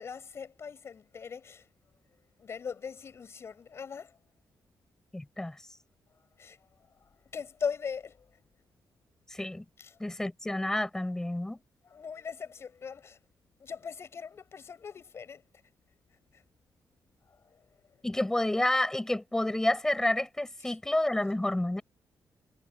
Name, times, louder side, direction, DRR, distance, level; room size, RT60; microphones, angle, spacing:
voice 1, 0.0-1.7 2.4-4.2 6.4-6.6 7.0-8.4 9.8-10.0 11.8-13.2 13.6-15.4 16.3-16.4 17.3-18.0 20.6-20.8, left 6 dB, 35° left, 6.3 m, -40 dB
voice 2, 5.1-5.6 9.3-9.6 10.0-11.6 18.0-21.8, left 1 dB, 5° left, 5.1 m, -29 dB
wide cardioid pair, 180°, 7 cm